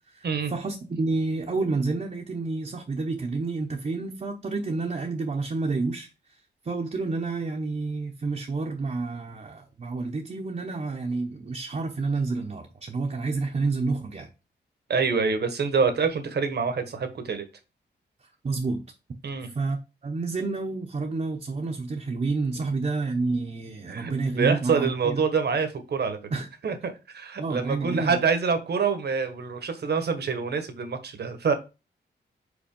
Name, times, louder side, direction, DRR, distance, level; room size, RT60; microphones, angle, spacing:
voice 1, 0.1-14.3 18.4-18.9 19.4-25.2 26.3-26.5 27.4-28.2, right 3 dB, 40° right, 0.9 m, -29 dB
voice 2, 14.9-17.5 19.2-19.5 23.9-26.2 26.6-31.5, right 5 dB, 65° right, 1.3 m, -26 dB
5.2 x 4.0 x 5.4 m
cardioid pair, 85°, 18 cm